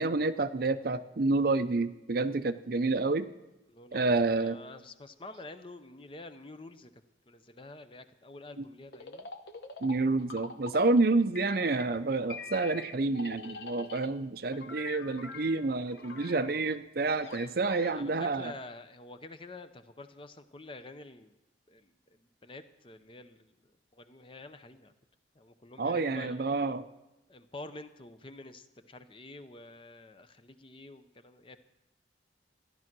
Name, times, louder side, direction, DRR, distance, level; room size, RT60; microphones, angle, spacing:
voice 1, 0.0-3.3 3.9-4.6 8.6-8.7 9.8-18.5 25.8-26.8, right 3 dB, 55° right, 12 dB, 0.6 m, -29 dB
voice 2, 3.7-6.9 7.3-9.3 17.8-21.4 21.7-24.9 25.3-26.4 27.3-31.6, left 2 dB, 30° left, 10 dB, 0.7 m, -48 dB
sound 1, 8.9-11.1 11.3-12.0 12.3-14.2 14.5-17.9, left 3 dB, 65° left, 1.0 m, -45 dB
14.0 x 11.0 x 6.0 m, 1.0 s
head